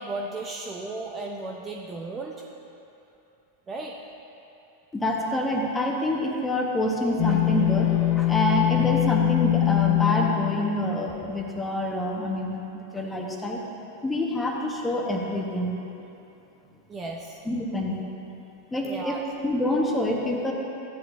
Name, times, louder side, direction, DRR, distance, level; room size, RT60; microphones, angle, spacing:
voice 1, 0.0-2.4 3.7-4.0 16.9-17.4 18.8-19.2, right 2 dB, 20° right, 0 dB, 0.7 m, -35 dB
voice 2, 4.9-13.6 14.0-15.7 17.4-18.0 18.7-19.2 19.4-20.5, left 1 dB, 10° left, 0 dB, 1.3 m, -27 dB
sound 1, 7.2-11.4, left 15 dB, 40° left, 0.3 m, -23 dB
15.0 x 9.9 x 2.7 m, 2.8 s
figure-of-eight pair, 90°, 0 cm